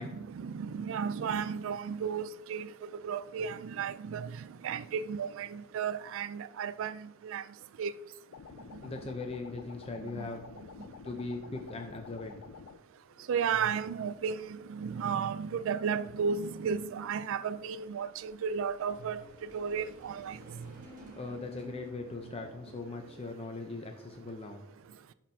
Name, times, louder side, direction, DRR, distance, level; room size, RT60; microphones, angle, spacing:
voice 1, 0.0-7.4 7.8-7.9 10.0-10.3 13.3-20.7, right 6 dB, 65° right, 0.3 m, -34 dB
sound 1, 8.3-12.8, left 6 dB, 85° left, 0.4 m, -49 dB
voice 2, 8.8-10.5 10.8-12.4 21.2-24.6, left 3 dB, 30° left, 0.6 m, -40 dB
sound 2, 14.1-23.2, left 1 dB, 40° right, 1.7 m, -57 dB
11.5 x 4.4 x 2.7 m
head